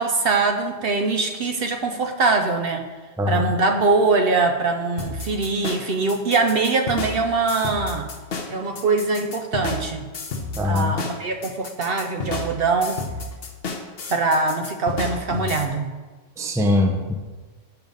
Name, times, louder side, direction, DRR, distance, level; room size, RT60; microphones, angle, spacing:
voice 1, 0.0-2.9 3.3-8.1 8.5-10.1 10.6-13.0 14.1-15.9, right 3 dB, 60° right, 5 dB, 0.7 m, -22 dB
sound 1, 5.0-15.6, left 3 dB, 55° left, 1.1 m, -31 dB
voice 2, 10.6-10.9 16.4-17.1, left 2 dB, 5° right, 4 dB, 0.5 m, -21 dB
7.0 x 6.2 x 5.3 m, 1.3 s
omnidirectional pair, 1.3 m